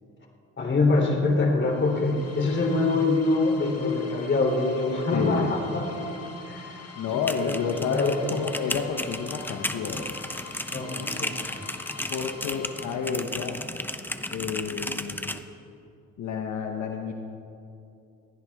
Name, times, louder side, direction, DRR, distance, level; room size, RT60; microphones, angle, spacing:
voice 1, 0.6-6.7 7.1-7.6 7.9-8.3 10.7-11.4, left 3 dB, 40° left, 1 dB, 3.4 m, -25 dB
sound 1, 1.6-13.5, left 4 dB, 55° left, 2.6 m, -45 dB
voice 2, 5.1-5.6 6.9-10.2 12.1-13.7 14.3-15.3 16.2-17.1, left 6 dB, 70° left, 3 dB, 1.2 m, -30 dB
sound 2, 7.1-15.4, left 1 dB, 5° left, 0.8 m, -34 dB
21.5 x 16.0 x 3.6 m, 2.6 s
cardioid pair, 90°, 30 cm